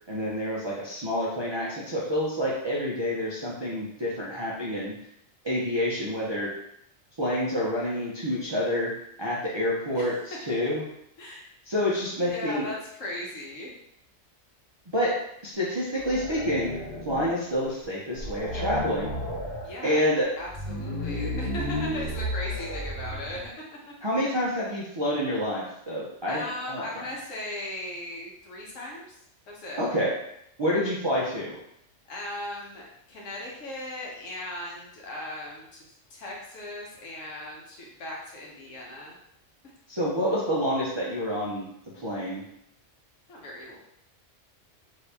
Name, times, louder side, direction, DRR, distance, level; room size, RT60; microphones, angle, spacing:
voice 1, 0.1-4.9 5.4-6.5 7.2-8.9 9.2-10.8 11.7-12.7 14.9-15.1 15.4-16.8 17.1-19.1 19.8-20.3 24.0-26.4 26.7-27.1 29.8-30.1 30.6-31.6 39.9-41.6 41.9-42.4, equal, 40° right, -6 dB, 0.4 m, -28 dB
voice 2, 11.2-11.5 12.2-13.8 19.6-20.1 20.4-23.5 23.9-24.0 26.3-29.2 29.5-29.8 32.1-39.2 43.3-43.8, left 1 dB, 90° left, -3 dB, 1.3 m, -38 dB
sound 1, 16.0-17.5 17.8-17.9 18.2-19.7 20.4-23.5, equal, 50° left, 1.0 m, -33 dB
2.8 x 2.6 x 3.3 m, 0.75 s
omnidirectional pair, 1.3 m